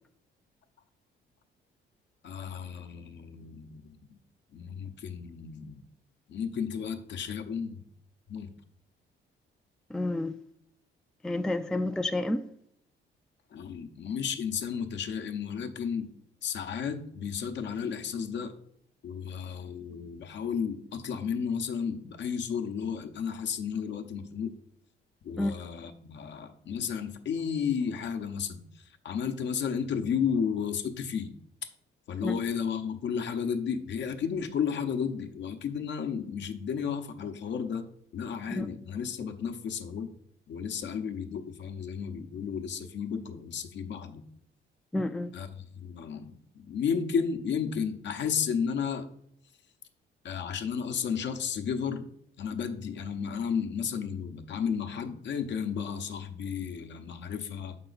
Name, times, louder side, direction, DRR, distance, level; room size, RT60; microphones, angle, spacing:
voice 1, 2.2-4.2 4.5-5.8 6.3-7.8 8.3-8.5 13.5-16.1 16.4-18.5 19.0-24.5 25.2-31.3 31.6-31.7 32.1-37.8 38.1-40.1 40.5-44.2 45.3-49.1 50.2-52.0 52.4-57.8, left 7 dB, 65° left, 7 dB, 0.8 m, -33 dB
voice 2, 9.9-10.3 11.2-12.4 25.4-25.5 32.2-32.4 38.5-38.7 44.9-45.3, left 1 dB, 5° left, 8 dB, 0.3 m, -30 dB
6.7 x 5.5 x 4.0 m, 0.71 s
cardioid pair, 90°, 20 cm